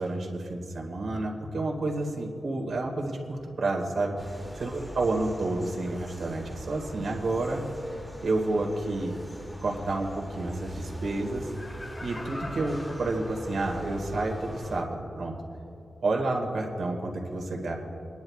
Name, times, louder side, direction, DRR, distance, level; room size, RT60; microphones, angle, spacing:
voice 1, 0.0-4.2 4.6-7.6 8.2-9.2 9.6-11.5 12.0-15.4 16.0-17.7, right 2 dB, 80° right, 0 dB, 1.9 m, -30 dB
sound 1, 4.2-14.8, equal, ahead, 1.0 m, -42 dB
Laughter, 11.4-14.1 14.5-14.6, left 1 dB, 25° left, 1.0 m, -42 dB
29.5 x 10.5 x 2.4 m, 2.8 s
wide cardioid pair, 90°, 0 cm